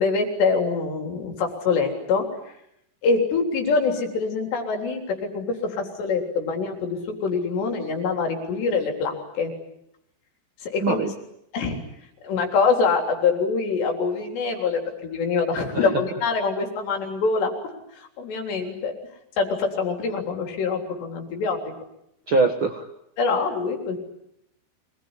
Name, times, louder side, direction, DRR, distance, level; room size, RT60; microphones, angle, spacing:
voice 1, 0.0-2.3 3.0-9.5 10.6-11.0 11.5-11.8 12.2-17.5 18.0-18.9 19.4-21.7 22.3-22.4 23.2-24.0, left 4 dB, 80° left, 3 dB, 5.8 m, -24 dB
voice 2, 10.8-11.1 15.7-16.0 22.3-22.8, right 3 dB, 55° right, 4 dB, 1.4 m, -22 dB
26.5 x 20.0 x 9.8 m, 0.80 s
omnidirectional pair, 4.9 m